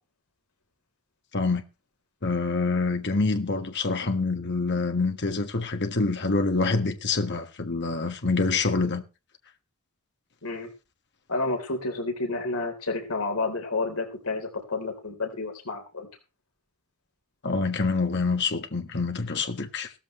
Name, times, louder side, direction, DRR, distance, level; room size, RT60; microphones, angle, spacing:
voice 1, 1.3-1.6 2.2-9.0 17.4-19.9, left 3 dB, 55° left, 1.4 m, -26 dB
voice 2, 11.3-16.1, left 3 dB, 75° left, 3.6 m, -30 dB
16.5 x 14.0 x 3.2 m
head